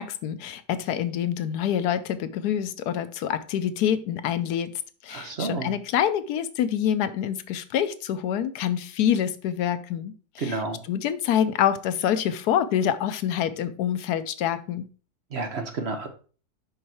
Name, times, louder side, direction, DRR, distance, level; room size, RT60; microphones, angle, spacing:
voice 1, 0.0-10.6 10.9-14.9, left 9 dB, 85° left, 12 dB, 1.2 m, -26 dB
voice 2, 5.1-5.8 10.4-10.8 15.3-16.1, right 3 dB, 50° right, 5 dB, 1.1 m, -30 dB
5.5 x 5.4 x 4.4 m, 0.39 s
omnidirectional pair, 1.7 m